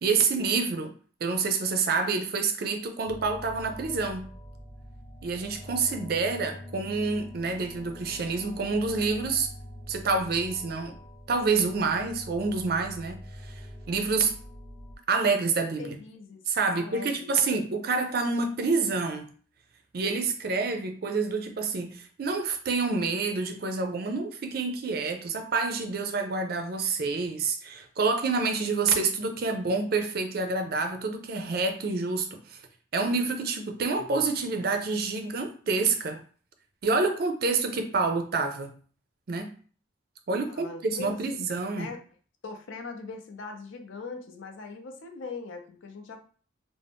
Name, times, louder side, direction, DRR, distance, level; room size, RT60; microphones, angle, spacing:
voice 1, 0.0-0.9 1.2-4.2 5.2-9.5 9.9-10.9 11.3-13.2 13.4-13.6 13.9-14.3 15.1-16.0 16.5-19.3 19.9-32.6 32.9-36.2 36.8-38.7 39.3-39.5 40.3-41.9, right 4 dB, 50° right, 5 dB, 0.4 m, -28 dB
sound 1, 3.0-15.0, equal, 10° left, 0.4 m, -44 dB
voice 2, 15.8-16.4 16.7-17.6 40.5-41.4 41.7-42.0 42.4-46.2, left 4 dB, 75° left, 5 dB, 0.5 m, -41 dB
2.5 x 2.0 x 3.4 m, 0.43 s
head